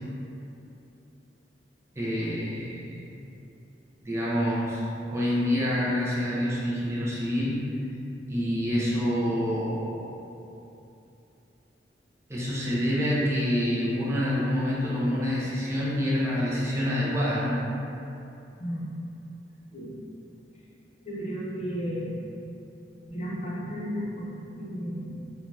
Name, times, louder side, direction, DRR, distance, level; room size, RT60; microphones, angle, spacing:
voice 1, 2.0-2.9 4.0-7.6 8.3-10.1 12.3-17.7, equal, 15° right, -8 dB, 0.4 m, -27 dB
voice 2, 18.6-18.9 19.7-20.0 21.0-22.2 23.1-25.2, equal, 40° left, -7 dB, 0.6 m, -34 dB
2.7 x 2.2 x 3.2 m, 2.8 s
head